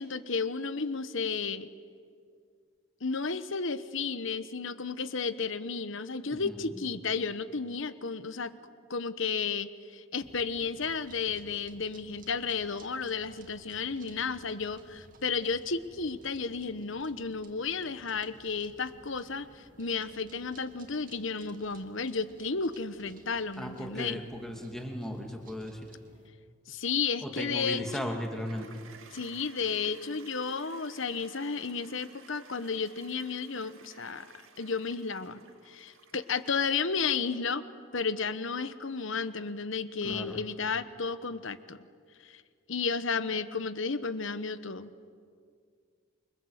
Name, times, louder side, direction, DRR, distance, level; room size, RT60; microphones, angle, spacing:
voice 1, 0.0-1.7 3.0-8.5 8.9-24.2 26.7-28.1 29.1-34.3 34.6-37.6 37.9-41.8 42.2-42.4 42.7-45.1, left 5 dB, 60° left, 13 dB, 1.2 m, -33 dB
voice 2, 6.3-6.8 23.6-25.9 27.2-28.8 40.0-40.4, equal, ahead, 2 dB, 2.6 m, -37 dB
sound 1, 10.2-26.3, right 2 dB, 40° right, 2.4 m, -57 dB
Toilet flush, 27.7-36.9, right 5 dB, 65° right, 2.3 m, -55 dB
28.5 x 24.5 x 8.2 m, 2.1 s
head